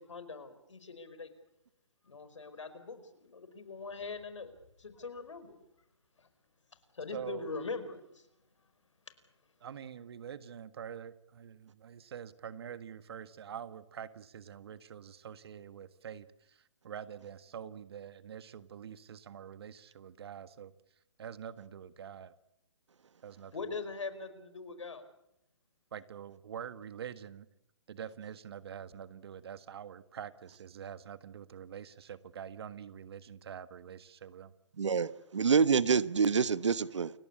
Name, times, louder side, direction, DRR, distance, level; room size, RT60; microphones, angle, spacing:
voice 1, 0.0-1.3 2.0-4.5 4.8-5.5 6.2-6.3 6.9-8.3 8.6-8.7 9.1-9.2 23.5-25.1, left 4 dB, 80° left, 5.0 m, -42 dB
voice 2, 7.1-7.5 9.6-20.7 21.2-22.3 23.2-23.5 25.9-27.5 27.9-34.5, right 8 dB, 55° right, 1.6 m, -45 dB
voice 3, 34.8-37.1, right 6 dB, 75° right, 1.2 m, -27 dB
29.0 x 18.0 x 8.6 m
hypercardioid pair, 145°, 15 cm